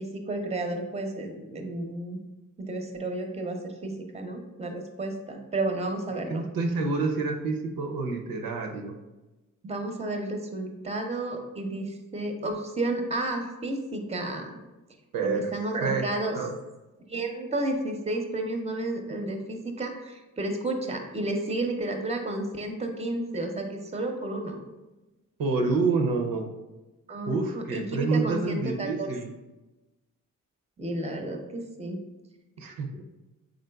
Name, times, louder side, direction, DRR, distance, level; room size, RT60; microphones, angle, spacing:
voice 1, 0.0-2.2 2.6-6.4 9.6-14.6 15.2-16.4 17.1-24.6 27.1-27.4 27.7-29.1 30.8-32.0, right 2 dB, 20° right, 4 dB, 0.6 m, -32 dB
voice 2, 6.3-9.0 15.1-15.5 15.8-16.1 16.3-16.5 25.4-26.4 27.3-29.3 32.6-33.0, right 4 dB, 85° right, 4 dB, 0.5 m, -28 dB
3.8 x 3.5 x 2.2 m, 1.1 s
cardioid pair, 60°, 34 cm